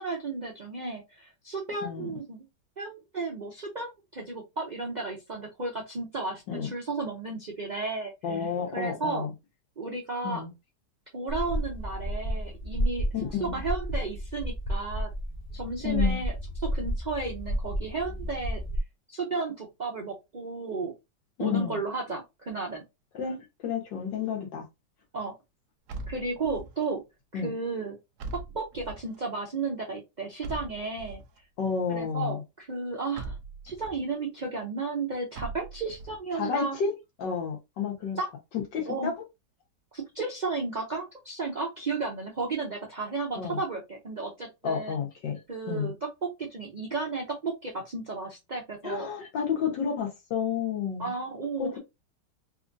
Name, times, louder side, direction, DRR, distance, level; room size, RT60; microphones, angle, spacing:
voice 1, 0.0-2.5 2.8-8.4 8.7-9.3 9.8-10.4 11.1-13.0 13.4-15.1 15.5-16.3 16.6-18.6 19.1-20.9 21.4-22.8 25.1-25.3 26.1-27.0 27.3-28.0 28.3-31.2 31.9-33.4 33.6-36.8 38.2-38.3 38.8-39.1 39.9-45.0 45.5-45.9 46.2-49.1 51.0-51.7, right 3 dB, 85° right, 0.4 m, -33 dB
voice 2, 1.8-2.2 6.5-6.7 8.2-9.3 10.2-10.5 13.1-13.6 15.8-16.2 21.4-21.8 23.1-24.6 27.3-27.5 31.6-32.4 36.4-36.9 37.2-38.2 38.7-39.1 43.4-43.6 44.6-45.4 45.7-45.9 48.8-51.1 51.6-51.8, left 6 dB, 90° left, 1.9 m, -31 dB
sound 1, 11.3-18.8, equal, 50° left, 0.7 m, -31 dB
sound 2, 25.9-26.8 28.2-29.2 30.4-31.4 33.1-34.0 35.3-36.2, right 3 dB, 70° right, 0.8 m, -40 dB
4.1 x 2.5 x 2.6 m
omnidirectional pair, 1.9 m